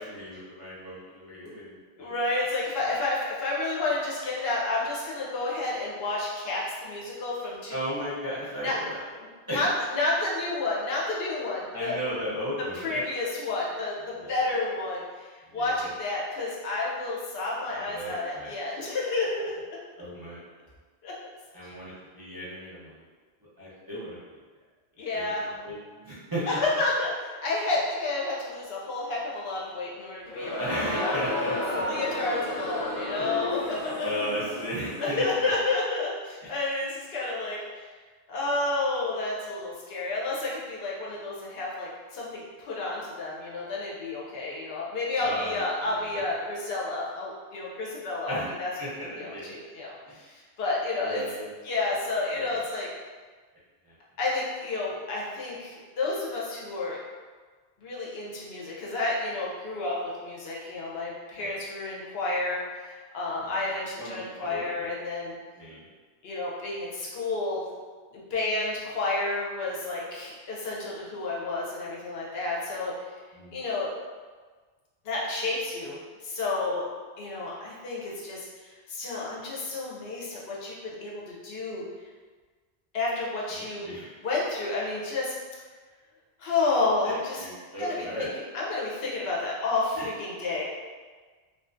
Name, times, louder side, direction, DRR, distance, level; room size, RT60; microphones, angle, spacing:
voice 1, 0.0-2.1 7.7-9.0 9.5-9.6 11.7-13.0 14.1-14.5 15.5-15.9 17.7-18.5 20.0-20.4 21.5-23.0 23.6-24.2 25.1-26.5 30.5-31.8 33.2-33.3 34.0-35.2 36.4-36.5 45.2-46.2 48.3-48.5 48.8-49.6 50.1-50.2 51.0-51.5 52.3-52.7 53.8-53.9 61.4-61.6 63.4-63.5 64.0-64.9 65.5-65.9 73.3-73.6 83.5-84.2 87.0-88.3 89.9-90.1, equal, 30° right, -10 dB, 0.5 m, -36 dB
voice 2, 2.0-7.7 8.6-8.8 9.5-12.0 12.8-19.8 21.0-21.1 21.6-21.7 25.0-25.4 26.5-30.6 30.9-34.0 35.0-37.9 38.3-48.7 49.2-51.2 51.6-52.9 54.2-57.0 57.8-65.4 66.2-67.6 68.1-72.9 73.5-73.9 75.0-76.0 76.2-76.8 77.2-81.8 82.9-83.9 84.2-85.4 86.4-87.4 87.8-88.1 88.5-90.6, left 2 dB, 80° left, -4 dB, 0.9 m, -30 dB
Crowd, 30.2-35.3, left 1 dB, 55° left, 0.4 m, -32 dB
2.4 x 2.4 x 2.4 m, 1.4 s
omnidirectional pair, 1.0 m